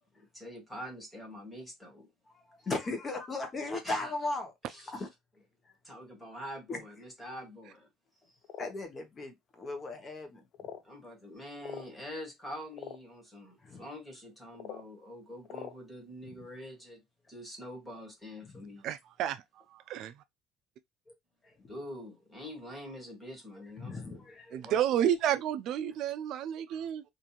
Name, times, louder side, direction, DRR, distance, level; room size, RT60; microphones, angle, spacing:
voice 1, 0.1-2.1 3.7-4.1 4.7-5.1 5.8-7.9 10.8-17.0 17.3-18.8 21.7-24.2 24.6-25.1, equal, 10° left, 1.6 m, -45 dB
voice 2, 2.6-4.5 4.9-5.1 6.7-6.8 8.6-10.4 13.6-13.8 18.5-18.6 23.8-24.6, left 2 dB, 30° left, 0.9 m, -37 dB
sound 1, 8.4-8.7 9.6-9.7 10.5-10.9 11.6-11.9 12.7-13.0 14.5-14.8 15.4-15.7, left 8 dB, 55° left, 0.7 m, -43 dB
voice 3, 18.8-19.4 19.9-20.1 24.5-27.0, right 10 dB, 60° right, 0.4 m, -30 dB
3.0 x 2.5 x 2.3 m
cardioid pair, 125°, 0 cm